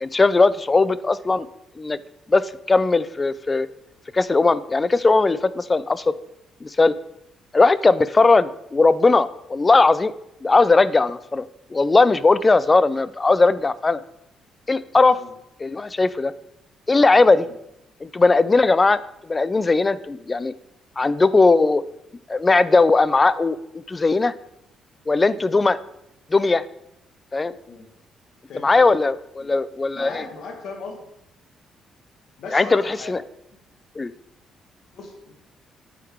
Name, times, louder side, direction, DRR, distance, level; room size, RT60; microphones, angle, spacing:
voice 1, 0.0-1.5 1.8-2.0 2.3-3.7 4.1-6.0 6.6-6.9 7.5-10.1 10.4-14.0 14.7-15.2 15.6-16.3 16.9-17.5 18.0-19.0 19.3-20.5 21.0-21.8 22.3-23.6 23.9-24.3 25.1-25.8 26.3-26.6 27.3-27.5 28.6-30.2 32.5-33.2 34.0-34.1, left 3 dB, 25° left, 17 dB, 0.4 m, -18 dB
voice 2, 28.5-28.9 29.4-29.5 29.9-31.0 32.4-33.2 34.9-35.3, left 4 dB, 70° left, 2 dB, 1.6 m, -38 dB
9.1 x 3.9 x 4.5 m, 0.81 s
cardioid pair, 90°, 0 cm